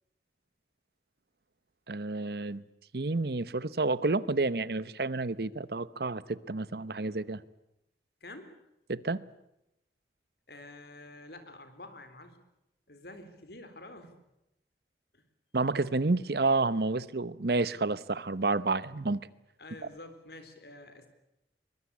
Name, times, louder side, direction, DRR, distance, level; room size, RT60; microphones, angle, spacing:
voice 1, 1.9-2.6 2.9-7.4 8.9-9.2 15.5-19.2, right 3 dB, 60° right, 0.9 m, -30 dB
voice 2, 8.2-8.6 10.5-12.4 12.9-14.2 15.1-15.2 19.6-21.1, left 2 dB, 65° left, 3.9 m, -48 dB
23.0 x 22.0 x 8.4 m
head